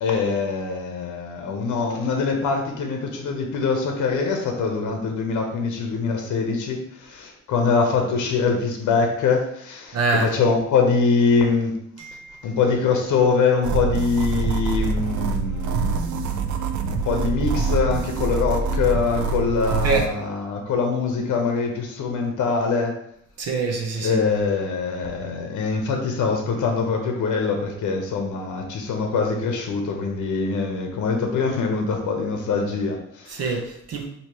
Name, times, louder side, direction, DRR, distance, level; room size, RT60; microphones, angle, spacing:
voice 1, 0.0-11.7 12.4-16.6 16.8-23.0 24.0-33.4, left 4 dB, 75° left, 3 dB, 0.7 m, -23 dB
voice 2, 9.9-10.3 12.0-12.4 19.8-20.0 23.4-24.2 33.3-34.1, right 4 dB, 55° right, 1 dB, 0.8 m, -25 dB
sound 1, 13.6-20.1, right 4 dB, 75° right, 0.4 m, -25 dB
4.6 x 2.8 x 2.9 m, 0.71 s
wide cardioid pair, 155°, 30 cm